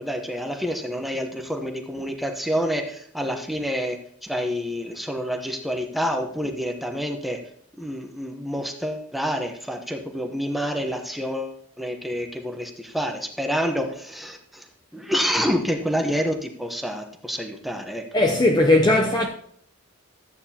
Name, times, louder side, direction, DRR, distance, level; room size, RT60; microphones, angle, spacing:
voice 1, 0.0-7.4 7.8-18.0, equal, ahead, 1.0 m, -28 dB
voice 2, 18.1-19.3, left 2 dB, 20° left, 0.6 m, -18 dB
13.5 x 8.9 x 2.9 m
head